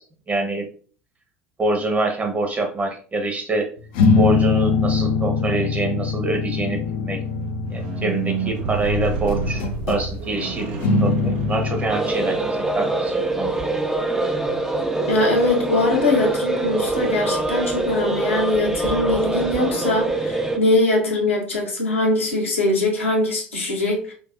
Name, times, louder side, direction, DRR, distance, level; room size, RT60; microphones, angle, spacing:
voice 1, 0.3-0.7 1.6-3.7 4.2-7.2 7.7-13.6, right 2 dB, 25° right, 1.0 m, -25 dB
sound 1, 4.0-8.9 9.3-10.1 10.8-11.9, left 4 dB, 55° left, 0.6 m, -22 dB
Squeak, 6.5-12.8 13.6-13.7, right 3 dB, 60° right, 0.6 m, -30 dB
sound 2, 11.9-20.6, right 2 dB, 5° right, 0.6 m, -24 dB
voice 2, 15.1-24.1, left 2 dB, 80° left, 1.1 m, -21 dB
5.1 x 2.3 x 2.5 m
figure-of-eight pair, 70°, 7 cm